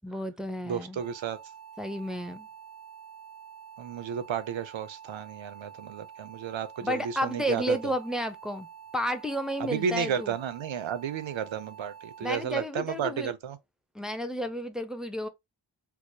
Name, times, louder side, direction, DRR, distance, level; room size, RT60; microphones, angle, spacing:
voice 1, 0.0-1.0 1.8-2.5 6.8-8.7 8.9-10.3 12.2-13.3 13.9-15.3, equal, ahead, 0.4 m, -32 dB
voice 2, 0.7-1.4 3.8-7.9 9.6-13.6, right 8 dB, 90° right, 0.6 m, -33 dB
sound 1, 1.0-12.4, right 8 dB, 20° left, 0.9 m, -48 dB
4.6 x 2.0 x 2.6 m
wide cardioid pair, 90°, 45 cm